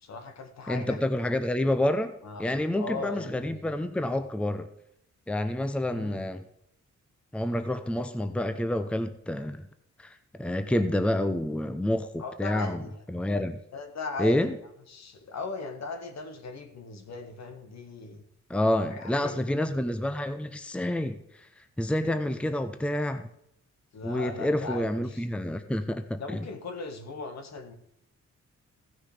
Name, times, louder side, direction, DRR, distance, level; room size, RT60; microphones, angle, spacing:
voice 1, 0.0-1.0 2.2-3.6 5.9-6.2 12.2-13.3 13.7-14.6 14.9-18.2 18.9-19.4 23.9-25.3 26.2-27.7, left 3 dB, 65° left, 7 dB, 1.7 m, -38 dB
voice 2, 0.7-2.1 2.4-4.7 5.3-6.4 7.3-9.7 10.0-12.8 13.1-13.6 14.2-14.5 18.5-21.5 21.8-23.3 24.0-26.5, left 1 dB, 5° left, 9 dB, 0.7 m, -28 dB
15.5 x 6.3 x 5.0 m, 0.76 s
cardioid pair, 100°, 29 cm